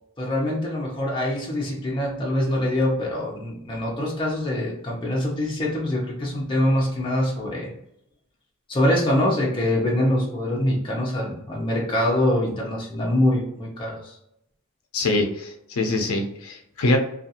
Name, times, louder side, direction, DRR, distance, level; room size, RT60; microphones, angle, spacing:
voice 1, 0.2-7.7 8.7-14.2, left 1 dB, 20° left, -3 dB, 0.7 m, -24 dB
voice 2, 14.9-17.0, left 2 dB, 80° left, 3 dB, 0.5 m, -24 dB
2.5 x 2.4 x 2.7 m, 0.78 s
head